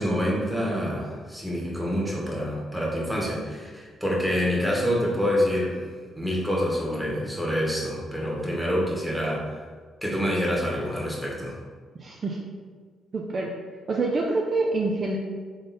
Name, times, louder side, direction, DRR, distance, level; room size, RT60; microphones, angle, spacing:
voice 1, 0.0-5.8 6.2-9.5 10.0-11.5, equal, ahead, -4 dB, 1.4 m, -27 dB
voice 2, 12.0-12.4 13.1-13.5 13.9-15.2, right 3 dB, 40° right, -1 dB, 0.5 m, -26 dB
3.8 x 3.3 x 4.1 m, 1.5 s
cardioid pair, 90°, 0 cm